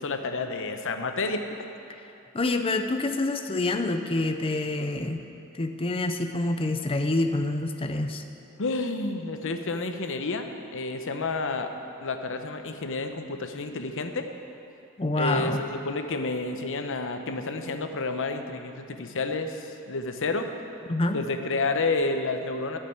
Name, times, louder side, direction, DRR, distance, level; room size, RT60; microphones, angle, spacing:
voice 1, 0.0-1.5 8.6-11.7 12.0-14.3 15.2-20.5 21.1-22.8, left 3 dB, 60° left, 6 dB, 0.9 m, -30 dB
voice 2, 2.3-5.2 5.5-8.2 15.0-15.6 20.9-21.2, left 2 dB, 25° left, 6 dB, 0.6 m, -27 dB
12.0 x 6.6 x 9.3 m, 2.7 s
head